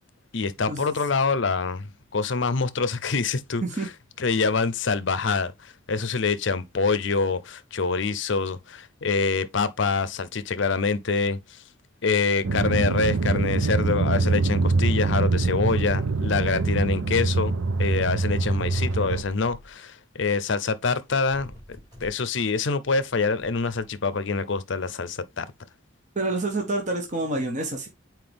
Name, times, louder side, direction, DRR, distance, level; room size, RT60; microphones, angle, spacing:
voice 1, 0.3-3.6 4.2-11.4 12.0-21.5 22.0-25.5, left 4 dB, 65° left, 0.6 m, -25 dB
sound 1, 12.4-19.2, right 3 dB, 85° right, 0.6 m, -24 dB
sound 2, 18.6-19.7 20.8-20.9 21.0-22.2 23.1-24.0, left 1 dB, 20° right, 4.7 m, -47 dB
voice 2, 26.1-27.9, right 2 dB, 35° right, 1.3 m, -27 dB
7.8 x 4.6 x 3.4 m
head